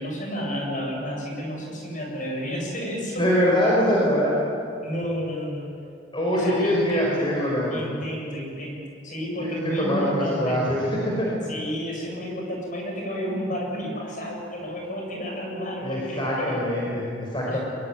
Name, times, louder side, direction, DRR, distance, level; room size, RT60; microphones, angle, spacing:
voice 1, 0.0-3.3 4.0-4.1 4.8-5.7 6.3-7.2 7.7-10.7 11.5-16.7 17.5-17.6, equal, 45° left, 0 dB, 7.8 m, -31 dB
voice 2, 3.2-4.4 6.1-7.8 9.4-11.4 15.8-17.6, equal, 25° left, -4 dB, 5.3 m, -23 dB
22.5 x 22.5 x 9.5 m, 2.4 s
head